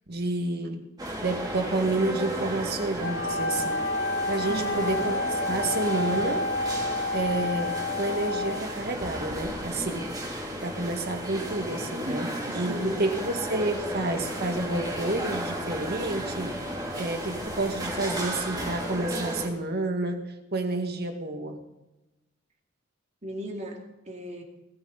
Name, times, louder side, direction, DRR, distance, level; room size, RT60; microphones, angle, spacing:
voice 1, 0.1-0.9 1.2-3.8 4.3-6.4 7.1-12.3 12.5-16.5 17.0-21.6, right 2 dB, 55° right, 5 dB, 2.0 m, -30 dB
sound 1, 1.0-19.5, equal, 20° right, 3.1 m, -34 dB
Wind instrument woodwind instrument, 3.0-8.9, left 2 dB, 65° left, 2.0 m, -29 dB
voice 2, 4.5-5.0 11.9-13.1 23.2-24.4, right 1 dB, 35° right, 2 dB, 2.6 m, -36 dB
19.5 x 14.5 x 4.1 m, 0.98 s
head